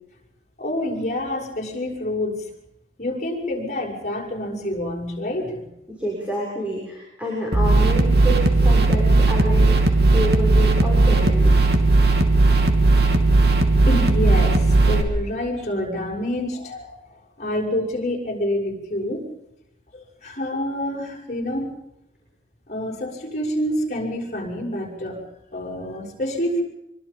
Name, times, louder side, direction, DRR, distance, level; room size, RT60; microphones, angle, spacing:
voice 1, 0.6-2.5 3.0-5.7 13.9-16.9 17.4-19.3 19.9-21.7 22.7-25.2 25.5-26.6, left 1 dB, 40° left, -1 dB, 6.8 m, -27 dB
voice 2, 5.9-11.7, equal, 5° right, -4 dB, 6.9 m, -28 dB
sound 1, 7.5-15.0, right 2 dB, 60° right, 3.1 m, -16 dB
26.0 x 25.0 x 5.6 m, 0.85 s
head